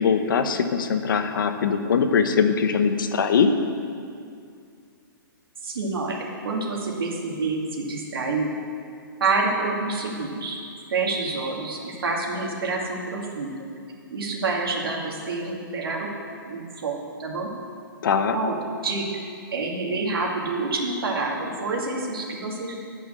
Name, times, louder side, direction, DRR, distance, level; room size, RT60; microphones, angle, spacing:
voice 1, 0.0-3.5 18.0-18.4, left 6 dB, 65° left, 8 dB, 0.9 m, -21 dB
voice 2, 5.6-8.5 9.2-10.6 10.9-13.5 14.1-16.1 16.5-16.9 17.2-17.5 18.3-18.5 18.8-19.2 19.5-22.8, right 3 dB, 80° right, -1 dB, 2.4 m, -27 dB
11.5 x 5.6 x 7.6 m, 2.3 s
hypercardioid pair, 165°, 12 cm